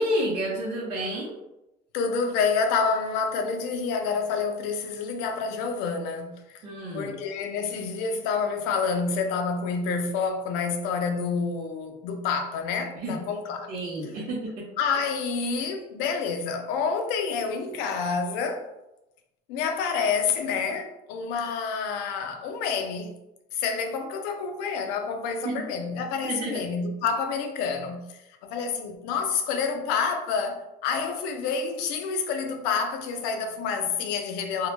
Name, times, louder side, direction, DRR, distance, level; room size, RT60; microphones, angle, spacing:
voice 1, 0.0-1.3 6.6-7.1 12.9-13.2 13.7-14.7 25.4-25.5 26.2-26.6, equal, 60° right, 0.7 m, -30 dB
voice 2, 1.9-6.6 6.9-13.7 14.8-18.7 19.5-23.1 23.5-34.7, left 5 dB, 85° left, 0.4 m, -28 dB
2.2 x 2.0 x 2.9 m
cardioid pair, 155°, 16 cm